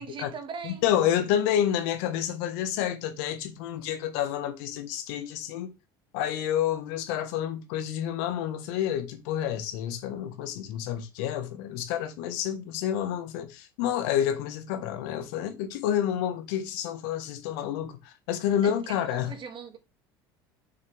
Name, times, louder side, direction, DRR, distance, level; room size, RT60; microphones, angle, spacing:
voice 1, 0.0-0.9 18.6-19.8, right 5 dB, 40° right, 2.2 m, -40 dB
voice 2, 0.6-5.7 6.1-19.3, left 10 dB, 70° left, 1.4 m, -29 dB
7.2 x 6.4 x 3.4 m
hypercardioid pair, 75°, 13 cm